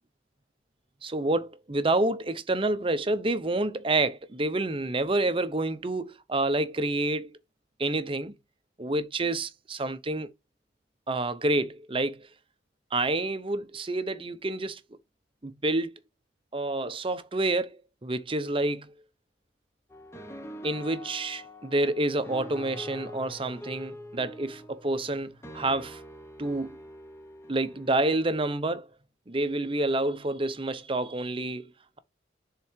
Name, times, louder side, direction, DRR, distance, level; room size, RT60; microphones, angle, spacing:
voice 1, 1.0-7.3 7.8-8.3 8.8-10.3 11.1-12.3 12.9-14.8 15.4-15.9 16.5-18.9 20.6-26.0 26.4-26.8 27.5-28.9 29.3-31.6, right 2 dB, 30° right, 0.8 m, -28 dB
sound 1, 19.9-28.5, left 1 dB, 15° left, 1.0 m, -44 dB
7.0 x 3.8 x 4.6 m
head